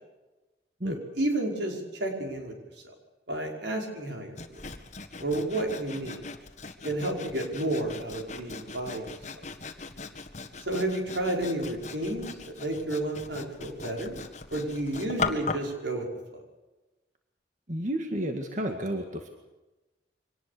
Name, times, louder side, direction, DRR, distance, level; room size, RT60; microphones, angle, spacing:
voice 1, 0.8-2.5 3.3-4.4 5.2-6.2 6.8-9.0 10.7-14.2 14.5-16.1, right 1 dB, 85° right, 1 dB, 5.6 m, -31 dB
Sawing, 4.4-15.7, left 4 dB, 40° left, 1.7 m, -39 dB
voice 2, 17.7-19.3, right 1 dB, 45° right, 4 dB, 2.0 m, -31 dB
24.5 x 19.0 x 6.9 m, 1.1 s
head